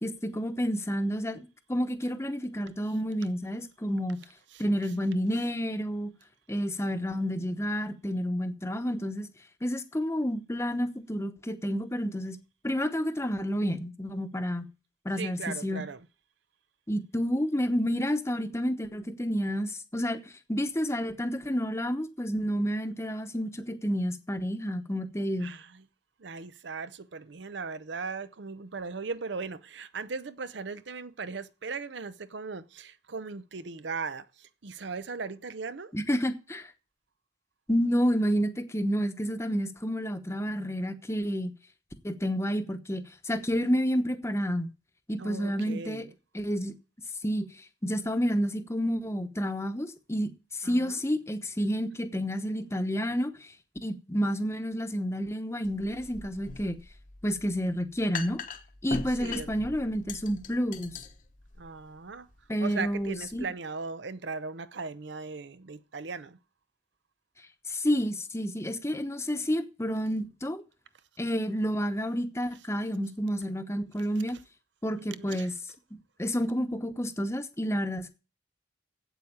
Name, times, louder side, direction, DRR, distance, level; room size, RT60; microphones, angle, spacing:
voice 1, 0.0-4.2 4.6-6.1 6.5-9.3 9.6-12.4 12.6-14.7 15.0-15.8 16.9-20.2 20.5-25.5 35.9-36.7 37.7-41.5 42.0-44.7 45.1-46.1 46.3-46.7 47.2-47.5 47.8-53.5 53.8-56.8 57.2-58.4 58.8-61.0 62.5-63.5 67.7-70.6 71.2-74.4 74.8-75.5 76.2-78.1, equal, 15° left, 1.0 m, -30 dB
voice 2, 15.2-16.1 25.4-25.8 26.2-35.9 45.2-46.1 50.6-51.0 59.2-59.5 61.6-62.3 62.6-66.4 74.9-75.5, right 4 dB, 75° right, 0.7 m, -38 dB
sound 1, 55.6-63.4, left 4 dB, 45° left, 1.0 m, -42 dB
8.1 x 8.0 x 8.6 m
head